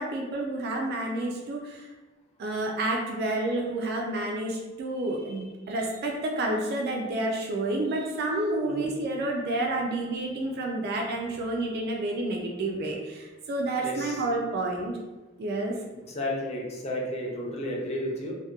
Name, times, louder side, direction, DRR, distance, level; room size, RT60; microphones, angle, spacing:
voice 1, 0.0-1.9 2.4-14.9 15.4-15.8, right 2 dB, 50° right, 0 dB, 0.3 m, -29 dB
voice 2, 13.8-14.2 15.9-18.3, left 1 dB, 30° left, -2 dB, 0.5 m, -32 dB
2.8 x 2.1 x 2.3 m, 1.2 s
head